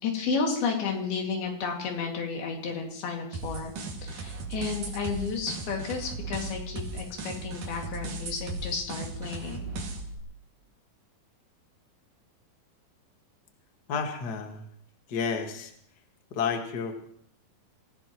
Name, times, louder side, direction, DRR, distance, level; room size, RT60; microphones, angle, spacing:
voice 1, 0.0-3.7 4.0-9.7, left 5 dB, 85° left, 1 dB, 4.3 m, -32 dB
sound 1, 3.3-10.2, right 3 dB, 65° right, 3.7 m, -37 dB
voice 2, 13.9-14.7 15.1-15.7 16.3-16.9, left 6 dB, 40° left, 3 dB, 1.6 m, -31 dB
26.5 x 16.0 x 3.1 m, 0.65 s
omnidirectional pair, 4.3 m